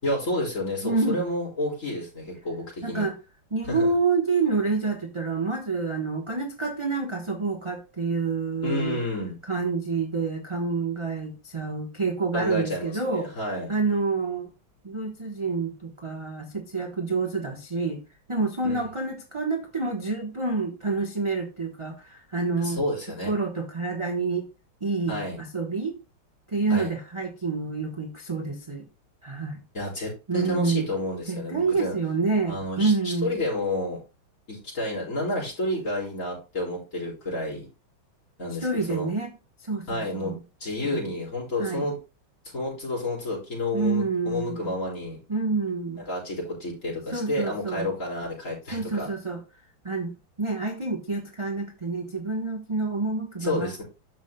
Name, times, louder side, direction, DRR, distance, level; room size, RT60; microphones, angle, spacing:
voice 1, 0.0-3.0 3.7-3.9 8.6-9.4 12.3-13.7 18.6-18.8 22.6-23.3 25.1-25.4 26.7-26.9 29.7-32.0 32.5-34.0 34.5-37.7 38.4-39.1 39.9-42.0 42.5-45.2 45.9-49.1 53.4-53.8, left 1 dB, 35° left, 4.8 m, -30 dB
voice 2, 0.8-1.2 2.8-3.1 3.5-9.0 9.5-13.3 13.7-14.5 14.8-18.0 18.3-22.8 23.3-24.4 24.8-25.9 26.5-28.8 29.2-29.6 30.3-30.9 31.3-33.3 38.6-39.3 39.6-40.4 40.8-41.1 41.6-41.9 43.7-44.7 45.3-46.0 47.1-47.9 48.7-49.4 49.8-50.1 50.4-53.7, right 4 dB, 25° right, 0.6 m, -28 dB
13.0 x 5.5 x 2.2 m
omnidirectional pair, 2.3 m